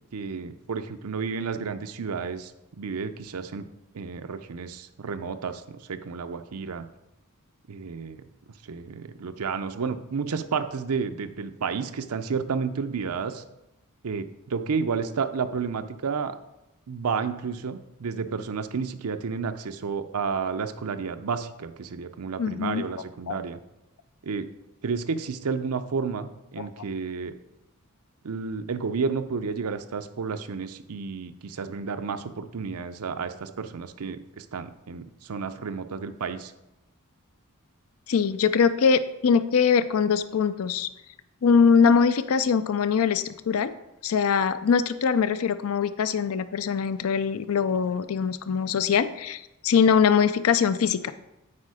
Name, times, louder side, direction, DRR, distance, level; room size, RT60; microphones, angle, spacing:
voice 1, 0.1-2.5 2.8-3.7 3.9-6.9 7.7-8.2 8.7-13.4 14.0-16.3 16.9-23.6 24.2-24.5 24.8-27.3 28.2-36.5, right 5 dB, 80° right, 9 dB, 0.6 m, -31 dB
voice 2, 22.4-22.8 23.3-23.4 26.6-26.7 38.1-40.9 41.4-43.7 44.0-51.1, left 6 dB, 65° left, 13 dB, 0.4 m, -22 dB
8.5 x 4.6 x 4.9 m, 0.90 s
head